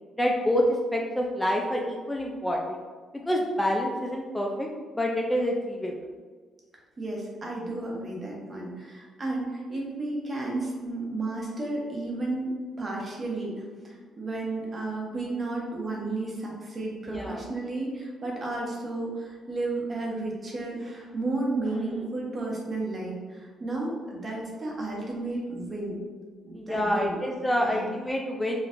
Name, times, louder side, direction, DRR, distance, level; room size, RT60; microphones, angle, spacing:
voice 1, 0.2-2.8 3.3-4.7 4.9-5.9 17.1-17.4 21.7-22.0 26.5-28.6, equal, 10° left, 0 dB, 0.4 m, -27 dB
voice 2, 7.0-12.5 12.8-26.0 26.4-27.2 27.6-27.9, right 2 dB, 35° right, -2 dB, 1.0 m, -33 dB
4.2 x 2.4 x 2.5 m, 1.5 s
cardioid pair, 90°, 0 cm